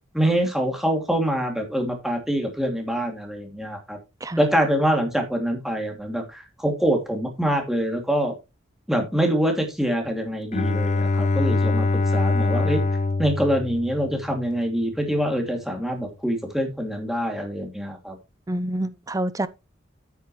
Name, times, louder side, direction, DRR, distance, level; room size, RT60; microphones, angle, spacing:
voice 1, 0.1-4.0 4.4-8.3 8.9-11.9 12.1-12.8 13.2-18.2, equal, ahead, 2.6 m, -25 dB
Bowed string instrument, 10.5-14.5, left 3 dB, 35° left, 0.5 m, -23 dB
voice 2, 18.5-19.5, right 1 dB, 15° right, 0.5 m, -27 dB
9.2 x 8.7 x 3.1 m
head